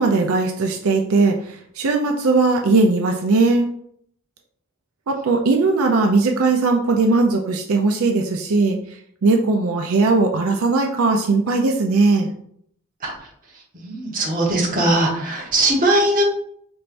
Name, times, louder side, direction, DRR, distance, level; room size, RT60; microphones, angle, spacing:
voice 1, 0.0-3.7 5.1-8.8 9.2-12.3, right 3 dB, 90° right, 2 dB, 0.5 m, -18 dB
voice 2, 13.5-16.2, right 1 dB, 40° right, -2 dB, 1.1 m, -20 dB
4.4 x 3.2 x 2.5 m, 0.66 s
head